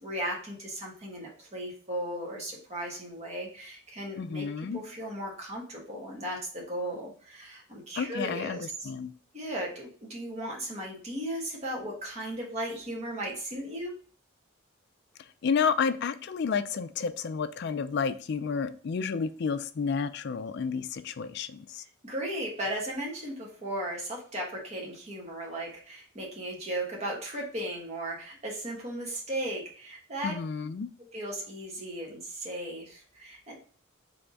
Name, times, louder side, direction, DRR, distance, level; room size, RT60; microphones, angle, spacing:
voice 1, 0.0-4.5 4.7-8.9 9.3-13.9 22.0-30.4 31.1-33.5, right 1 dB, 30° right, -2 dB, 1.3 m, -36 dB
voice 2, 4.2-4.8 8.0-9.1 15.4-21.8 30.2-30.9, left 5 dB, 55° left, 12 dB, 0.4 m, -31 dB
3.4 x 3.4 x 3.9 m, 0.43 s
head